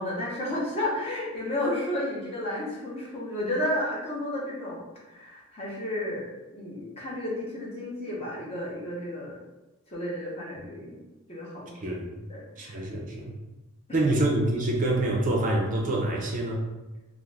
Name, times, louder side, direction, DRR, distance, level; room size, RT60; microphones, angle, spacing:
voice 1, 0.0-9.4 9.9-11.0 11.3-11.9 12.3-12.7 13.9-14.3, left 1 dB, 25° left, -5 dB, 0.8 m, -32 dB
voice 2, 12.6-13.3 13.9-16.6, right 1 dB, 35° right, -1 dB, 0.4 m, -26 dB
2.4 x 2.4 x 3.2 m, 1.1 s
head